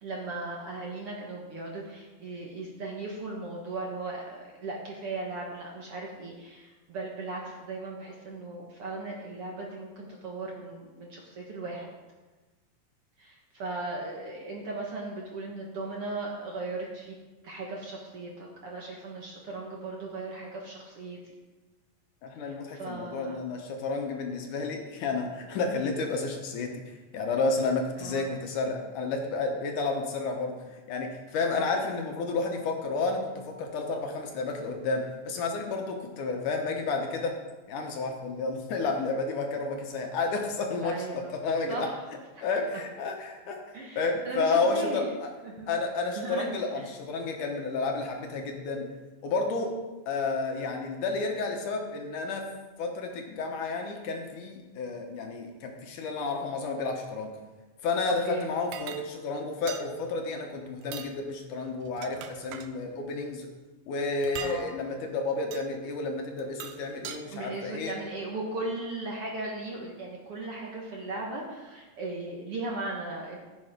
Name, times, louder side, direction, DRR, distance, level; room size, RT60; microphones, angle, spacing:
voice 1, 0.0-11.9 13.2-17.2 17.4-21.2 22.5-23.4 28.0-28.3 31.5-31.7 40.8-41.3 41.7-42.0 42.4-42.5 43.7-45.1 45.4-45.7 46.2-46.9 58.2-58.5 64.4-64.7 67.3-73.4, right 2 dB, 55° right, -1 dB, 1.9 m, -37 dB
voice 2, 22.2-26.7 27.1-30.5 30.9-37.3 37.7-41.9 42.4-43.6 44.0-45.3 45.7-48.9 49.2-49.7 50.1-52.5 52.8-57.3 57.8-63.5 63.9-68.0, left 3 dB, 70° left, 2 dB, 2.5 m, -31 dB
sound 1, 58.7-59.0 59.7-59.9 60.8-61.1 61.8-62.7 64.2-64.6 65.5-65.7 66.4-67.2, right 9 dB, 90° right, 2.6 m, -40 dB
15.5 x 7.3 x 5.1 m, 1.2 s
omnidirectional pair, 4.0 m